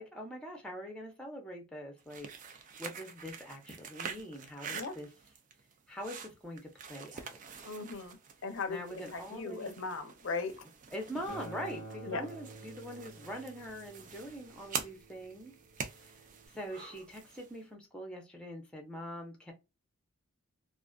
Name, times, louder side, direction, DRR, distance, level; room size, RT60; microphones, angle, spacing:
voice 1, 0.0-5.1 5.9-7.7 8.7-9.8 10.9-15.5 15.9-16.2 16.5-19.5, equal, 5° left, 0.6 m, -44 dB
sound 1, 2.0-17.6, right 6 dB, 35° right, 0.3 m, -46 dB
voice 2, 7.6-8.2 8.4-10.6 12.1-12.3, left 4 dB, 60° left, 0.5 m, -38 dB
Acoustic guitar, 11.3-16.5, right 2 dB, 85° right, 1.3 m, -50 dB
2.4 x 2.3 x 2.2 m
head